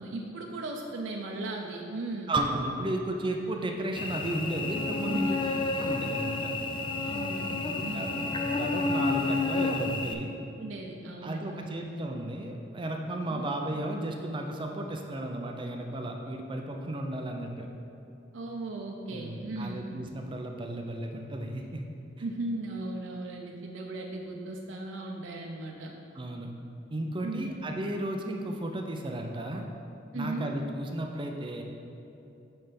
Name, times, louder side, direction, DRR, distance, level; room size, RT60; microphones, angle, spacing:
voice 1, 0.0-2.3 5.0-5.5 7.0-8.3 10.5-11.9 13.3-13.5 18.3-19.9 22.2-25.9 27.2-27.5 30.1-30.5, right 2 dB, 80° right, 0 dB, 0.6 m, -37 dB
voice 2, 2.3-5.4 5.8-6.5 7.7-8.1 8.4-10.3 11.2-17.7 19.1-21.8 26.1-26.5 26.9-29.6 30.1-31.6, right 1 dB, 25° right, 2 dB, 0.5 m, -34 dB
Cricket / Buzz, 4.0-10.1, left 3 dB, 25° left, 0.4 m, -30 dB
8.7 x 3.4 x 5.8 m, 2.8 s
head